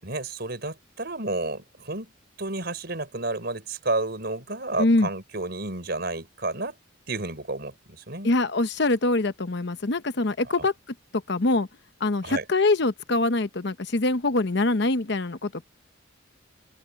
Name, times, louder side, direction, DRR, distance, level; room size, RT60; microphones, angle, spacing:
voice 1, 0.0-2.1 2.4-6.8 7.1-8.3 10.5-10.7 12.2-12.4, right 2 dB, 55° right, 5.2 m, -31 dB
voice 2, 4.8-5.1 8.2-10.7 11.3-11.7 12.0-15.6, left 2 dB, 60° left, 0.9 m, -24 dB
open air
head